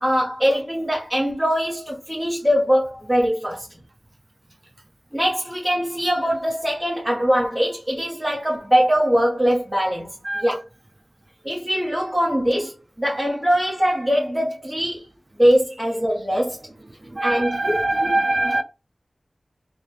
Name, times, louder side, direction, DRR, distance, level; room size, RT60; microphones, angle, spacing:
voice 1, 0.0-3.7 5.1-10.2 10.4-10.6 11.4-15.0 15.4-16.6 17.2-17.8 18.0-18.1, equal, 10° right, 1.3 m, -22 dB
voice 2, 10.2-10.6 16.8-18.6, right 2 dB, 40° right, 0.4 m, -23 dB
3.6 x 2.6 x 3.2 m
wide cardioid pair, 55°, 0 cm